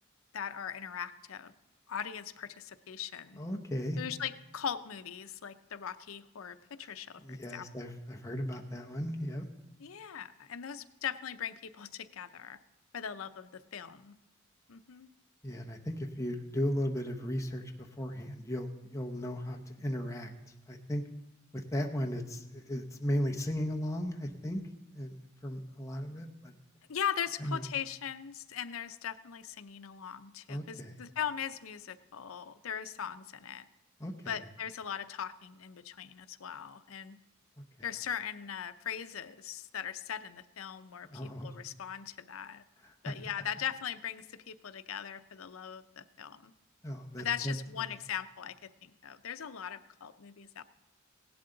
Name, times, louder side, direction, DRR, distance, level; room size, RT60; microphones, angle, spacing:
voice 1, 0.3-1.5 1.9-3.4 4.0-7.6 9.8-12.6 12.9-14.1 14.7-15.1 26.9-33.7 34.3-37.2 37.8-42.6 43.0-46.5 47.2-50.6, left 8 dB, 85° left, 12 dB, 0.6 m, -39 dB
voice 2, 3.4-4.0 6.8-6.9 7.2-9.5 15.4-20.3 20.7-21.0 21.5-24.6 24.9-25.1 25.4-26.5 27.4-27.6 30.5-31.0 34.0-34.3 37.6-37.7 41.0-41.6 42.8-43.1 46.8-47.8, equal, 15° left, 2 dB, 0.8 m, -36 dB
16.5 x 11.5 x 3.9 m, 0.97 s
head